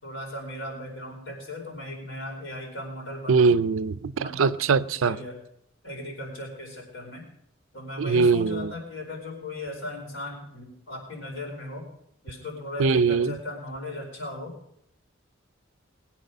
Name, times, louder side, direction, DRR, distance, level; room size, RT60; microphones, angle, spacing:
voice 1, 0.0-3.6 4.2-4.5 4.8-5.4 5.8-7.2 7.7-11.8 12.2-14.5, left 1 dB, 70° left, 4.8 m, -37 dB
voice 2, 3.3-5.2 8.0-8.7 12.8-13.4, right 5 dB, 80° right, 0.5 m, -22 dB
20.5 x 9.0 x 5.4 m
head